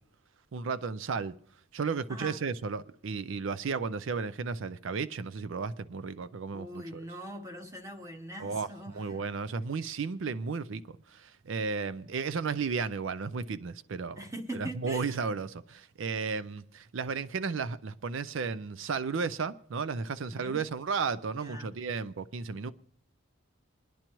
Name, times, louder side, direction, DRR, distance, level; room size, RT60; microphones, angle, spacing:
voice 1, 0.5-1.3 1.7-7.0 8.4-14.2 14.5-22.7, right 5 dB, 60° right, 0.4 m, -34 dB
voice 2, 2.1-2.4 6.5-9.2 14.2-15.2 20.3-20.6 21.4-21.7, right 1 dB, 15° right, 0.8 m, -42 dB
28.0 x 10.0 x 3.0 m
head